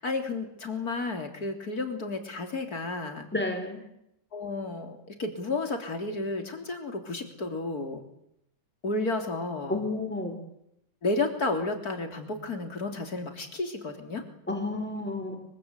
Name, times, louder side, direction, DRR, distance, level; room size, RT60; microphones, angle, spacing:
voice 1, 0.0-3.3 4.3-8.0 8.8-9.8 11.0-14.2, left 3 dB, 50° left, 5 dB, 3.9 m, -32 dB
voice 2, 3.3-3.8 9.7-10.3 14.5-15.4, left 2 dB, 5° left, 5 dB, 4.5 m, -31 dB
25.0 x 24.5 x 8.3 m, 0.79 s
omnidirectional pair, 2.1 m